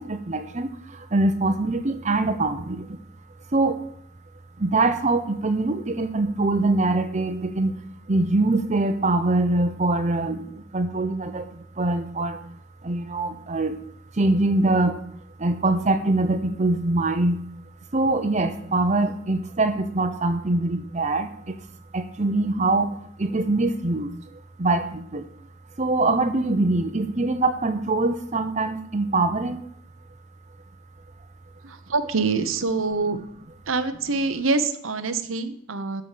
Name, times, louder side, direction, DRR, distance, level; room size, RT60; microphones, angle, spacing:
voice 1, 0.0-3.0 3.5-3.8 4.6-7.8 8.1-12.4 12.8-13.8 14.1-15.0 15.4-17.4 17.9-21.6 21.9-24.1 24.6-25.3 25.8-29.7, right 2 dB, 35° right, 8 dB, 0.8 m, -23 dB
voice 2, 31.6-33.2 33.7-36.0, right 3 dB, 85° right, 10 dB, 0.9 m, -25 dB
13.0 x 5.0 x 7.4 m, 0.69 s
head